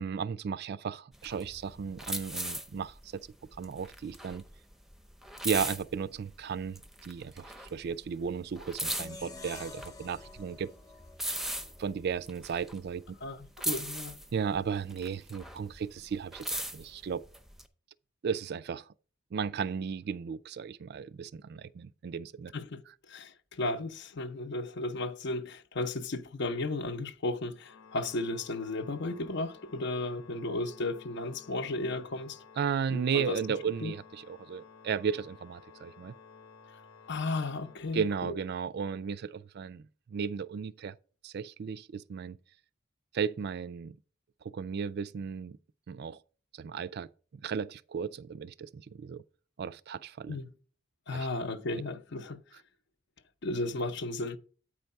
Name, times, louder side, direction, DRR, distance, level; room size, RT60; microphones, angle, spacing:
voice 1, 0.0-3.2 3.6-4.4 5.4-10.7 11.8-13.0 14.3-17.2 18.2-18.8 19.3-22.5 32.6-36.1 37.9-39.8 40.1-40.9 41.2-42.4 43.1-44.0 44.4-45.6 45.9-46.2 46.6-47.1 47.3-49.2 49.6-50.4 51.1-51.3, right 6 dB, 55° right, 0.4 m, -35 dB
sound 1, 1.1-6.4 6.7-8.1 8.3-13.3 13.6-15.8 16.1-17.6, right 1 dB, ahead, 0.6 m, -38 dB
sound 2, 8.9-12.1, left 3 dB, 20° left, 0.9 m, -48 dB
voice 2, 13.2-14.2 22.5-22.8 23.1-32.4 32.9-33.9 37.1-38.4 50.3-50.5 51.1-52.4 53.4-54.4, left 2 dB, 60° left, 0.6 m, -34 dB
Organ, 27.6-38.5, left 5 dB, 80° left, 1.1 m, -55 dB
8.5 x 4.6 x 5.4 m
head